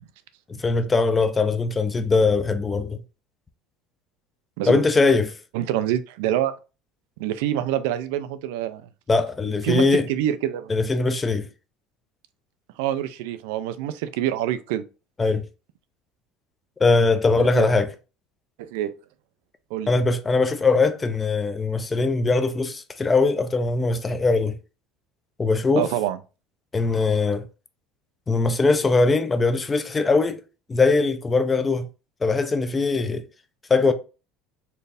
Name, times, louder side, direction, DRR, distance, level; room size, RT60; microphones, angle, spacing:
voice 1, 0.5-3.0 4.7-5.4 9.1-10.0 10.7-11.5 15.2-15.4 16.8-17.9 19.9-24.5 25.4-25.9 26.7-27.4 28.3-30.4 30.7-31.9 32.2-33.2 33.7-33.9, left 3 dB, 15° left, 0.4 m, -21 dB
voice 2, 5.5-6.5 7.2-8.8 9.6-10.7 12.8-14.8 17.4-17.7 18.6-18.9 19.7-19.9 25.8-26.2, right 12 dB, 85° right, 0.4 m, -26 dB
4.3 x 2.6 x 3.3 m
cardioid pair, 165°, 0 cm